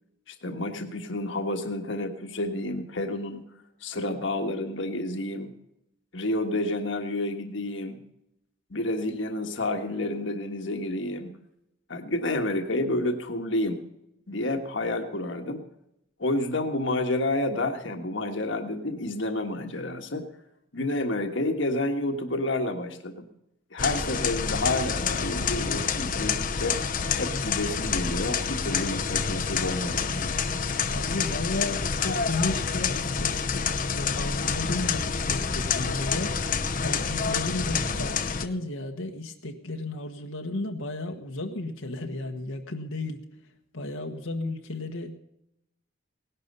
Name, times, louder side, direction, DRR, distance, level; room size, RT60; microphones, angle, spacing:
voice 1, 0.3-3.4 3.8-5.5 6.1-8.0 8.7-11.4 11.9-13.8 14.3-15.6 16.2-20.2 20.7-23.3 23.7-26.8 27.2-30.3, left 1 dB, 65° left, 5 dB, 1.5 m, -29 dB
sound 1, 23.8-38.5, left 5 dB, 40° left, 0.8 m, -28 dB
voice 2, 30.9-36.4 36.8-43.2 43.7-45.2, left 2 dB, 85° left, 3 dB, 1.4 m, -33 dB
18.0 x 11.5 x 5.5 m, 0.82 s
head